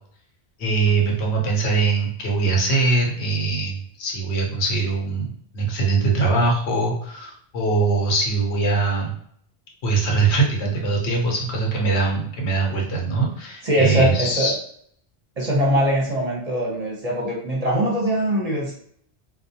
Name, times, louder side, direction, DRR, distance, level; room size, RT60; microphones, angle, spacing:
voice 1, 0.6-9.1 9.8-14.5, right 3 dB, 80° left, 0 dB, 1.0 m, -22 dB
voice 2, 13.6-14.5 15.4-18.7, right 1 dB, 40° right, -4 dB, 0.7 m, -22 dB
2.3 x 2.1 x 2.7 m, 0.65 s
omnidirectional pair, 1.1 m